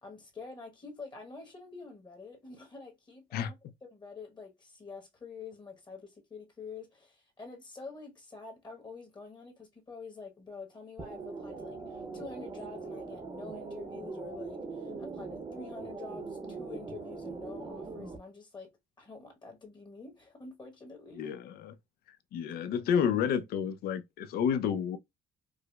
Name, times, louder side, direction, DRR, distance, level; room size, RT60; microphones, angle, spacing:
voice 1, 0.0-3.5 3.8-18.7 19.0-21.3, left 4 dB, 25° left, 1.1 m, -47 dB
sound 1, 11.0-18.2, right 4 dB, 25° right, 0.7 m, -41 dB
voice 2, 21.2-21.8 22.3-25.0, left 8 dB, 65° left, 0.5 m, -30 dB
4.8 x 2.0 x 2.3 m
cardioid pair, 110°, 17 cm